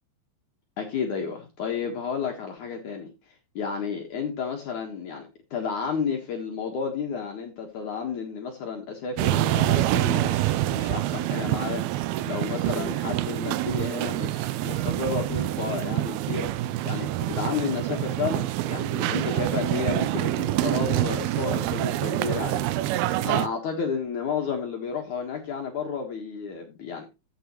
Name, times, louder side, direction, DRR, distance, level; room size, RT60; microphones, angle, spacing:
voice 1, 0.8-3.1 3.6-16.5 16.9-27.1, left 6 dB, 60° left, 2.6 m, -32 dB
sound 1, 9.2-23.5, right 15 dB, 80° right, 2.5 m, -26 dB
15.0 x 7.2 x 3.0 m
omnidirectional pair, 4.5 m